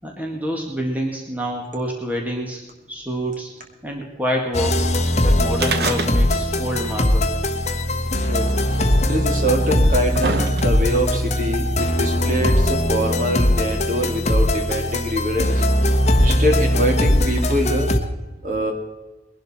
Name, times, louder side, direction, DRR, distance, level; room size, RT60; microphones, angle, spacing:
voice 1, 0.0-2.6 2.9-3.5 3.8-4.9 5.2-7.3, equal, 10° right, 0 dB, 2.0 m, -27 dB
sound 1, 4.5-18.0, left 1 dB, 40° left, 1.3 m, -20 dB
sound 2, 5.5-6.6 6.8-6.9 7.9-8.0 8.9-9.0 9.7-11.0 11.9-12.0, right 3 dB, 60° right, 1.0 m, -26 dB
voice 2, 8.7-15.5 16.2-17.9 18.4-18.7, equal, 45° right, 2 dB, 2.7 m, -24 dB
21.0 x 12.0 x 4.4 m, 1.1 s
head